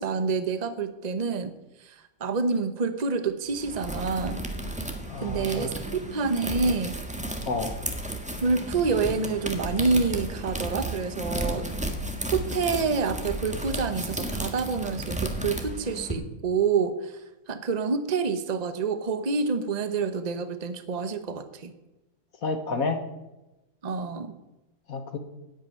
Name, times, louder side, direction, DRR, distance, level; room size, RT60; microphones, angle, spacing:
voice 1, 0.0-1.5 1.8-4.4 5.2-7.0 8.4-11.7 12.3-21.8 23.8-24.3, right 4 dB, 45° right, 10 dB, 0.5 m, -27 dB
sound 1, 3.5-16.1, right 1 dB, 5° right, 1.1 m, -33 dB
voice 2, 5.1-5.8 7.4-7.7 22.4-23.0 24.9-25.2, left 4 dB, 50° left, 8 dB, 1.4 m, -30 dB
10.5 x 8.7 x 9.3 m, 1.0 s
omnidirectional pair, 2.3 m